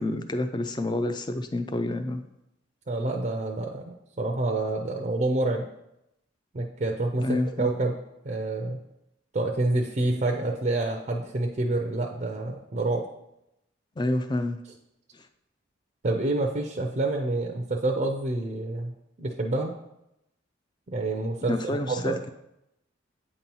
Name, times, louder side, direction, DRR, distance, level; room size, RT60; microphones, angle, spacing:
voice 1, 0.0-2.2 7.2-7.7 14.0-14.6 21.5-22.3, left 1 dB, 20° left, 9 dB, 0.4 m, -28 dB
voice 2, 2.9-5.7 6.5-7.9 8.2-8.8 9.3-13.0 16.0-18.9 19.2-19.7 20.9-22.2, right 2 dB, 35° right, 1 dB, 0.5 m, -28 dB
8.5 x 2.9 x 5.4 m, 0.86 s
head